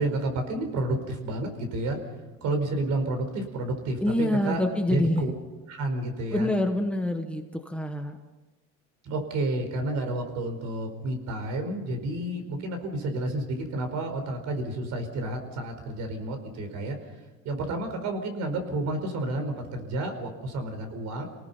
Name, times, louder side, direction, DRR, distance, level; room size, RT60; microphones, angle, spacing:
voice 1, 0.0-2.0 2.4-4.6 4.9-5.3 5.7-6.5 9.0-17.0 17.4-21.2, right 2 dB, 60° right, 5 dB, 4.7 m, -30 dB
voice 2, 4.0-5.2 6.3-8.2, left 1 dB, 5° left, 6 dB, 1.1 m, -26 dB
29.0 x 19.0 x 5.6 m, 1.2 s
cardioid pair, 145°, 31 cm